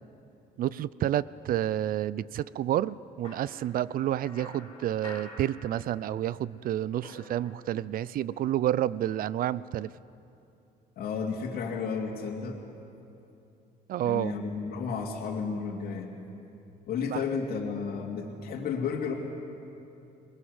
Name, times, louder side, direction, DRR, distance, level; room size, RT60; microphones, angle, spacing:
voice 1, 0.6-9.9 13.9-14.3 17.1-17.2, right 12 dB, 60° right, 20 dB, 0.5 m, -29 dB
sound 1, 3.2-6.3 6.5-8.0, left 2 dB, 30° left, 4.0 m, -49 dB
voice 2, 11.0-12.6 14.0-16.1 16.9-19.1, left 5 dB, 65° left, -1 dB, 2.6 m, -32 dB
21.0 x 20.5 x 8.0 m, 2.8 s
cardioid pair, 110°, 17 cm